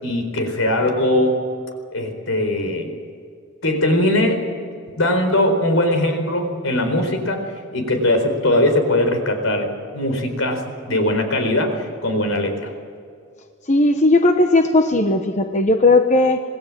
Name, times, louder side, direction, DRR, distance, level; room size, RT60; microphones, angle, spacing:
voice 1, 0.0-1.4 1.9-2.9 3.6-4.4 5.0-7.4 7.7-9.7 9.9-11.7 12.0-12.7, left 1 dB, 75° left, 6 dB, 4.4 m, -20 dB
voice 2, 13.7-16.4, left 2 dB, 35° left, 6 dB, 1.0 m, -16 dB
27.0 x 20.0 x 7.5 m, 2.3 s
head